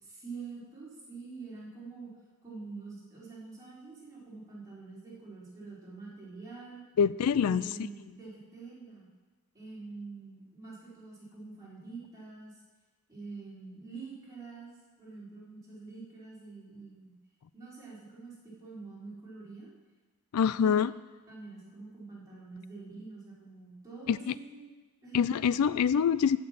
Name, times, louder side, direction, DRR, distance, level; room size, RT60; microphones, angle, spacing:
voice 1, 0.0-2.1 2.4-6.8 7.3-9.1 9.5-12.5 13.1-17.1 17.5-19.7 20.6-20.7 21.3-24.7 25.0-25.3, right 4 dB, 15° right, -8 dB, 4.5 m, -46 dB
voice 2, 7.0-7.6 20.3-20.9 24.1-24.3 25.1-26.4, left 7 dB, 90° left, 17 dB, 0.4 m, -25 dB
16.0 x 6.0 x 7.5 m, 1.3 s
head